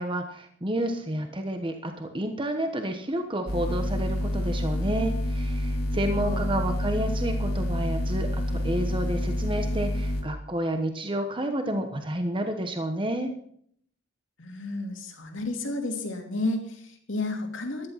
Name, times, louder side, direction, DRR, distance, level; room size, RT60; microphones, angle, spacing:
voice 1, 0.0-13.3, right 1 dB, 25° right, 5 dB, 1.2 m, -30 dB
sound 1, 3.5-10.2, left 1 dB, 55° left, 2.6 m, -28 dB
voice 2, 6.1-6.5 14.4-17.9, left 2 dB, 70° left, 3 dB, 2.8 m, -32 dB
14.5 x 11.0 x 5.8 m, 0.66 s
head